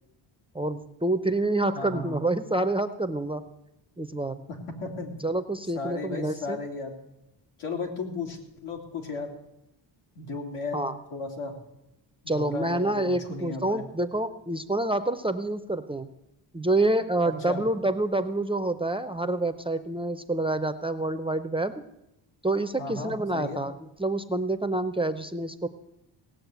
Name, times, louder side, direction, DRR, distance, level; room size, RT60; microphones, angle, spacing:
voice 1, 0.5-3.4 4.0-4.4 5.2-6.6 10.7-11.0 12.3-16.1 16.5-21.7 22.4-25.7, right 2 dB, 10° right, 11 dB, 0.5 m, -27 dB
voice 2, 1.7-2.2 4.5-5.1 5.7-6.9 7.6-9.3 10.2-10.8 11.1-11.6 12.2-13.8 17.2-17.6 22.8-23.6, left 3 dB, 85° left, 1 dB, 3.1 m, -35 dB
17.5 x 7.7 x 8.0 m, 0.89 s
wide cardioid pair, 145°, 50 cm